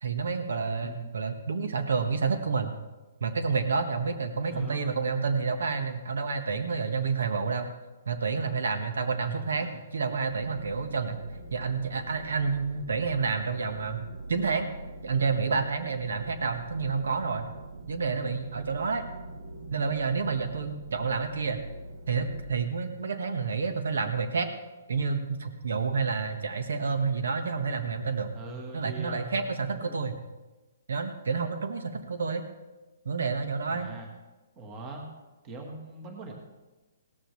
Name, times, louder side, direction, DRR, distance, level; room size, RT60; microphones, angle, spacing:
voice 1, 0.0-2.7 3.2-7.7 8.1-11.2 11.5-14.7 15.0-17.5 17.9-19.1 19.7-21.6 22.1-24.5 24.9-28.3 28.7-30.2 30.9-32.4 33.0-33.9, right 5 dB, 70° right, 7 dB, 1.4 m, -29 dB
voice 2, 4.5-4.8 9.2-9.8 28.3-30.0 33.7-34.1 34.5-35.1 35.4-36.3, right 3 dB, 15° right, 2 dB, 1.5 m, -42 dB
sound 1, 10.3-22.5, right 2 dB, 55° right, 1.5 m, -44 dB
17.0 x 14.0 x 3.2 m, 1.1 s
hypercardioid pair, 175°, 0 cm